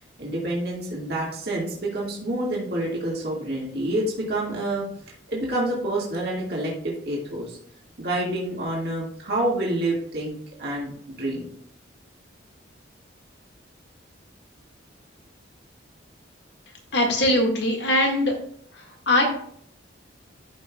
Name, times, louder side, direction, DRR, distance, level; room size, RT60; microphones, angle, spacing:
voice 1, 0.2-4.9 5.3-7.6 8.0-10.9 11.2-11.5, right 1 dB, 55° right, -4 dB, 1.8 m, -28 dB
voice 2, 16.9-18.4 19.1-19.2, left 1 dB, 65° left, 1 dB, 1.7 m, -21 dB
12.5 x 5.5 x 2.3 m, 0.64 s
head